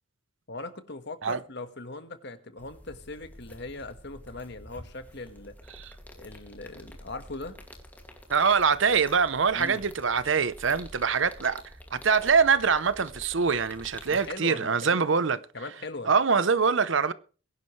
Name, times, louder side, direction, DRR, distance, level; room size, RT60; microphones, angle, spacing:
voice 1, 0.5-5.5 6.1-7.6 9.5-9.8 14.1-15.0 15.5-16.1, left 2 dB, 55° left, 1.5 m, -40 dB
sound 1, 2.6-14.3, left 1 dB, 10° left, 2.3 m, -48 dB
voice 2, 8.3-11.6 11.9-15.4 16.1-17.1, right 5 dB, 65° right, 0.8 m, -24 dB
21.5 x 11.0 x 3.2 m
head